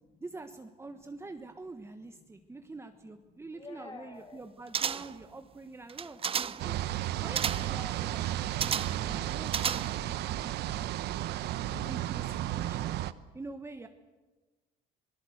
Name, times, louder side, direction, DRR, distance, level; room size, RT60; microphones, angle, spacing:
voice 1, 0.2-6.8 7.2-10.9 11.8-13.0 13.3-13.9, right 3 dB, 15° right, 6 dB, 1.3 m, -46 dB
voice 2, 2.2-2.6 3.3-4.4 10.9-11.9, left 4 dB, 30° left, 2 dB, 6.6 m, -52 dB
sound 1, 4.7-5.3 5.9-6.7 7.4-7.8 8.6-9.1 9.5-10.1 10.5-10.6, right 7 dB, 35° right, 0.7 m, -32 dB
sound 2, 6.6-13.1, right 13 dB, 80° right, 0.9 m, -33 dB
27.0 x 18.5 x 8.0 m, 1.2 s
cardioid pair, 110°, 17 cm